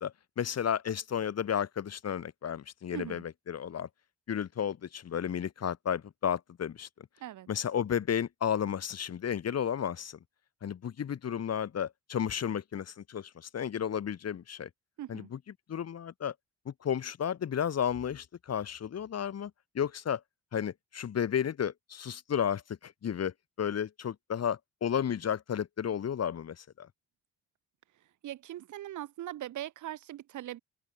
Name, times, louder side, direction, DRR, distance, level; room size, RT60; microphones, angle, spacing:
voice 1, 0.0-3.9 4.3-7.1 7.5-10.2 10.6-14.7 15.1-15.4 15.7-16.3 16.6-20.2 20.5-26.9, left 8 dB, 55° left, 5.1 m, -33 dB
voice 2, 2.9-3.2 7.2-7.5 15.0-15.3 28.2-30.6, right 13 dB, 75° right, 2.8 m, -40 dB
cardioid pair, 90°, 30 cm